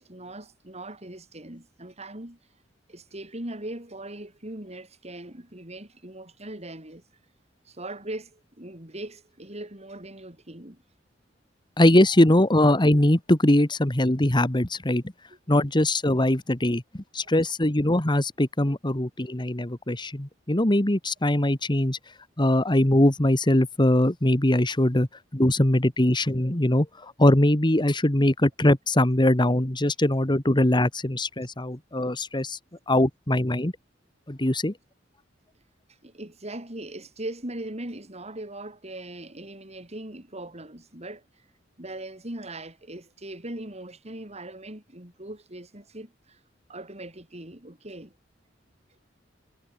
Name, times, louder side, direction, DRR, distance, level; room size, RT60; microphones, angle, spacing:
voice 1, 0.0-2.4 2.9-7.0 7.7-10.8 15.3-15.4 36.0-41.2 41.8-46.4 46.7-48.1, right 1 dB, 35° right, 5.2 m, -40 dB
voice 2, 11.8-15.0 15.5-22.0 22.4-25.1 25.3-32.6 32.9-33.7 34.3-34.7, left 1 dB, 25° left, 1.8 m, -22 dB
head